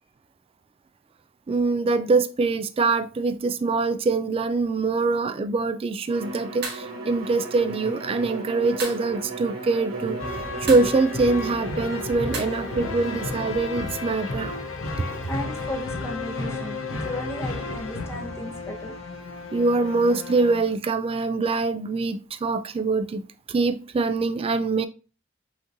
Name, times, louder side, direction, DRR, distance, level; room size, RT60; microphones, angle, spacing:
voice 1, 1.5-14.6 15.1-15.2 19.5-23.2 23.5-24.9, right 3 dB, 25° right, 0.3 m, -24 dB
Bowed string instrument, 6.1-13.5, right 2 dB, 90° right, 1.8 m, -35 dB
sound 1, 6.6-6.9 8.8-9.1 10.7-11.0 12.3-12.4, right 4 dB, 55° right, 1.4 m, -32 dB
sound 2, 10.2-20.7, left 3 dB, 70° left, 0.9 m, -33 dB
voice 2, 15.2-18.9, left 1 dB, 10° left, 0.9 m, -35 dB
5.7 x 3.0 x 2.6 m
head